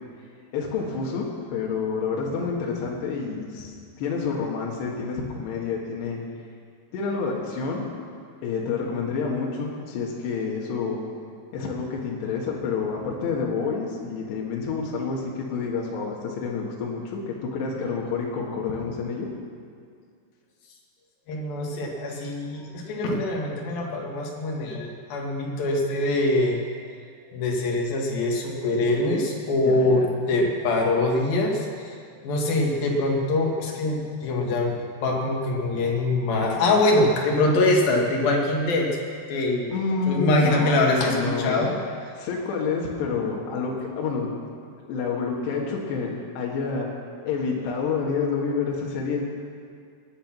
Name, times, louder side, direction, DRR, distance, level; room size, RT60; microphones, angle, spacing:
voice 1, 0.5-6.2 6.9-7.9 8.4-11.0 11.5-19.3 29.6-30.1 39.7-41.7 42.2-44.3 44.8-46.1 46.4-46.9 47.2-49.2, left 5 dB, 80° left, -3 dB, 3.7 m, -28 dB
voice 2, 21.3-26.6 27.3-32.0 32.2-38.9 39.3-39.7 40.1-41.8 48.5-48.6, left 2 dB, 65° left, -1 dB, 3.6 m, -24 dB
19.0 x 10.5 x 6.0 m, 2.2 s
omnidirectional pair, 4.9 m